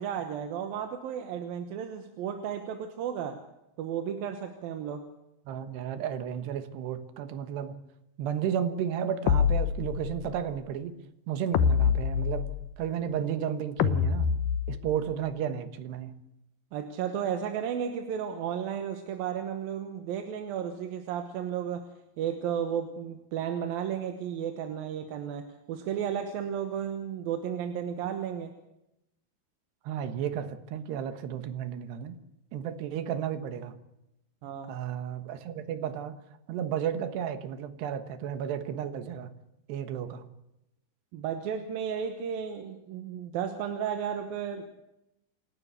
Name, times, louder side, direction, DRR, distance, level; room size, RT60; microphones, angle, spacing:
voice 1, 0.0-3.4 3.8-5.1 16.7-21.9 22.2-28.5 34.4-34.8 41.1-44.8, right 8 dB, 70° right, 7 dB, 2.8 m, -33 dB
voice 2, 5.5-7.8 8.2-11.0 11.3-12.5 12.8-14.3 14.7-16.2 29.9-32.2 32.5-33.8 34.7-36.2 36.5-39.4 39.7-40.3, right 9 dB, 85° right, 11 dB, 3.5 m, -33 dB
sound 1, 9.3-10.3 11.5-12.8 13.8-15.1, left 7 dB, 70° left, 2.3 m, -26 dB
27.5 x 12.0 x 8.2 m, 0.88 s
omnidirectional pair, 4.7 m